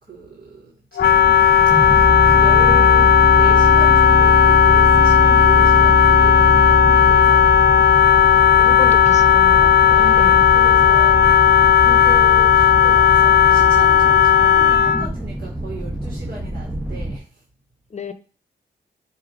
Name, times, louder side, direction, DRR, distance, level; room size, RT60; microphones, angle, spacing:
voice 1, 0.0-1.8 2.2-7.4 10.0-11.3 11.8-17.4, right 3 dB, 55° right, -4 dB, 2.4 m, -35 dB
Wind instrument woodwind instrument, 1.0-15.1, left 9 dB, 60° left, 0.4 m, -13 dB
sound 1, 1.0-17.2, equal, 5° right, 0.7 m, -23 dB
voice 2, 8.6-10.4 17.9-18.1, left 4 dB, 35° left, 11 dB, 0.9 m, -31 dB
8.4 x 2.8 x 5.1 m, 0.37 s
cardioid pair, 60°, 19 cm